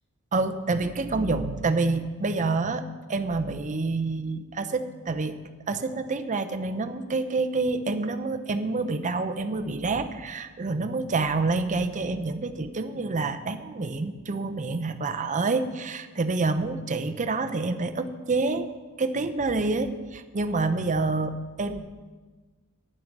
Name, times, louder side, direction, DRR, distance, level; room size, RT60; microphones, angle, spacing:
voice 1, 0.3-5.4 5.7-18.7 19.0-21.8, right 3 dB, 35° right, 9 dB, 0.6 m, -27 dB
10.0 x 9.3 x 6.0 m, 1.3 s
head